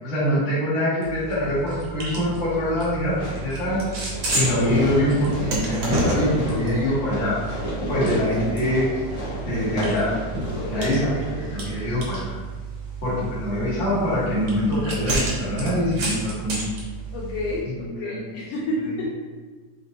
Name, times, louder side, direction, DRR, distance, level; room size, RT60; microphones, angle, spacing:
voice 1, 0.0-3.8 4.3-7.4 7.9-8.9 9.4-10.1 10.7-12.4 13.0-16.6 17.6-18.2 18.6-18.9, left 1 dB, 35° left, -10 dB, 1.3 m, -24 dB
sound 1, 1.0-17.6, right 3 dB, 80° right, 1.1 m, -32 dB
Fireworks, 3.2-12.2, equal, 65° left, 1.0 m, -30 dB
voice 2, 10.5-10.9 17.1-17.7 18.0-19.1, left 2 dB, 85° left, -4 dB, 1.4 m, -29 dB
5.2 x 3.2 x 2.7 m, 1.4 s
omnidirectional pair, 3.5 m